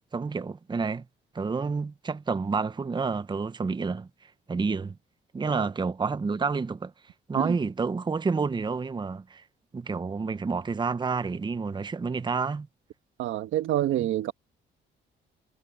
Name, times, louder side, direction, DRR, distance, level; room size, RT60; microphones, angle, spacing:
voice 1, 0.1-1.0 1.3-4.1 4.5-5.0 5.3-6.9 7.3-9.4 9.7-12.7, right 4 dB, 25° right, 0.8 m, -29 dB
voice 2, 13.2-14.3, right 13 dB, 85° right, 1.2 m, -27 dB
cardioid pair, 90°, 20 cm